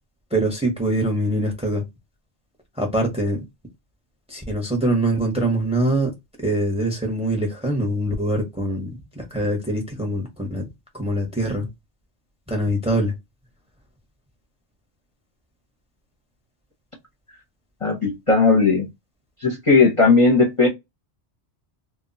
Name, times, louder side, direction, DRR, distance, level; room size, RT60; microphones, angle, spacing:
voice 1, 0.3-1.8 2.8-3.4 4.3-6.1 6.4-11.7 12.5-13.1, right 1 dB, 5° right, 0.7 m, -23 dB
voice 2, 17.8-18.9 19.4-20.7, left 3 dB, 35° left, 0.6 m, -17 dB
2.2 x 2.1 x 3.8 m
omnidirectional pair, 1.2 m